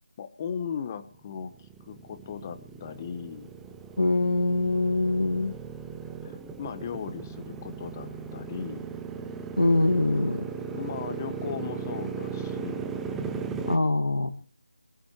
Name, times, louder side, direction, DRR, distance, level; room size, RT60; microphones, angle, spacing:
voice 1, 0.2-3.5 6.2-8.9 10.7-13.0, left 7 dB, 20° left, 12 dB, 1.1 m, -37 dB
Motorcycle, 1.1-13.8, right 5 dB, 5° right, 0.6 m, -37 dB
voice 2, 4.0-5.6 9.6-10.5 13.7-14.3, left 2 dB, 80° left, 9 dB, 1.8 m, -24 dB
24.5 x 12.5 x 3.0 m, 0.42 s
figure-of-eight pair, 165°, 4 cm